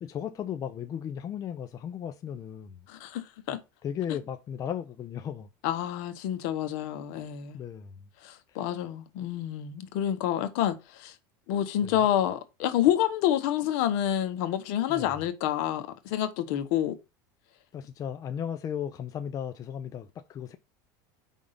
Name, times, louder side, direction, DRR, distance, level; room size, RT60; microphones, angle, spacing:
voice 1, 0.0-2.9 3.8-5.5 7.5-7.9 8.5-8.6 11.8-11.9 14.9-15.1 17.7-20.6, left 9 dB, 35° left, 0.6 m, -36 dB
voice 2, 2.9-3.6 5.6-7.6 8.2-11.1 11.5-16.9, left 11 dB, 70° left, 1.0 m, -28 dB
5.0 x 3.7 x 5.5 m
supercardioid pair, 110°, 10 cm